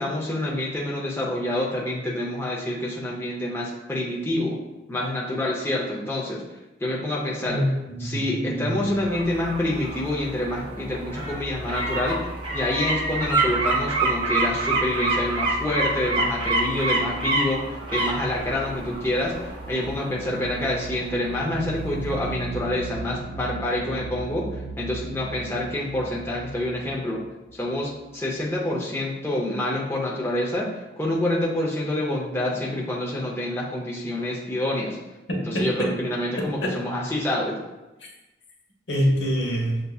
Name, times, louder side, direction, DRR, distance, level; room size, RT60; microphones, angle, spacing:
voice 1, 0.0-4.6 4.9-6.4 6.8-7.6 8.0-12.2 12.5-24.5 24.8-27.2 27.5-35.0 35.5-37.6, left 1 dB, 15° left, -4 dB, 0.6 m, -27 dB
voice 2, 7.4-8.8 35.3-35.9 36.4-36.8 38.9-39.8, equal, 75° left, -1 dB, 0.9 m, -26 dB
sound 1, 8.8-21.6 22.0-22.1, right 2 dB, 30° right, 0.7 m, -27 dB
sound 2, 19.5-28.2, right 4 dB, 80° right, 0.4 m, -37 dB
6.7 x 2.6 x 2.3 m, 1.0 s
head